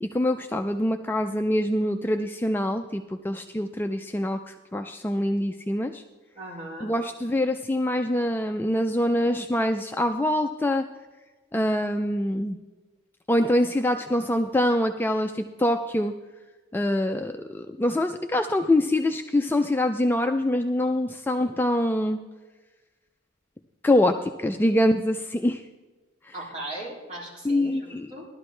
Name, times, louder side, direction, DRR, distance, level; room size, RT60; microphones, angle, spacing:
voice 1, 0.0-6.0 6.8-10.9 11.5-12.6 13.3-16.1 16.7-22.2 23.8-25.6 27.4-28.1, left 1 dB, 10° left, 6 dB, 0.3 m, -24 dB
voice 2, 6.3-6.9 26.3-28.3, right 1 dB, 35° right, -5 dB, 3.6 m, -38 dB
16.0 x 12.0 x 3.2 m, 1.2 s
head